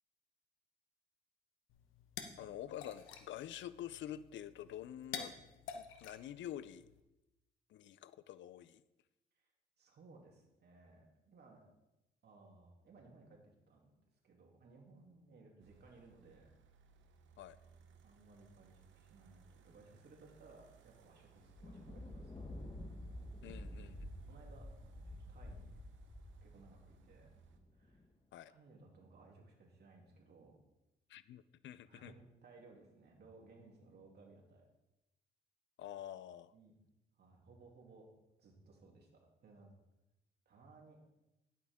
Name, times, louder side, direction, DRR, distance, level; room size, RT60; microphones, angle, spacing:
sound 1, 1.7-7.0, left 7 dB, 90° left, 1.1 m, -50 dB
voice 1, 2.4-5.4 5.7-6.9 7.7-8.8 17.4-17.6 23.4-24.1 28.3-28.5 31.1-32.1 35.8-36.5, left 11 dB, 70° left, 16 dB, 0.5 m, -47 dB
voice 2, 9.8-11.6 12.2-13.9 14.2-16.5 18.0-22.5 23.4-23.9 24.3-25.7 26.4-27.3 27.7-28.1 28.4-30.6 31.9-34.6 36.5-36.7 37.1-38.1 38.4-39.7 40.5-41.0, right 3 dB, 55° right, 0 dB, 2.8 m, -61 dB
sound 2, 15.6-27.6, right 7 dB, 75° right, 1.0 m, -65 dB
Thunder, 21.4-28.1, left 1 dB, 25° left, 1.2 m, -50 dB
11.0 x 8.6 x 3.6 m, 0.96 s
cardioid pair, 90°, 20 cm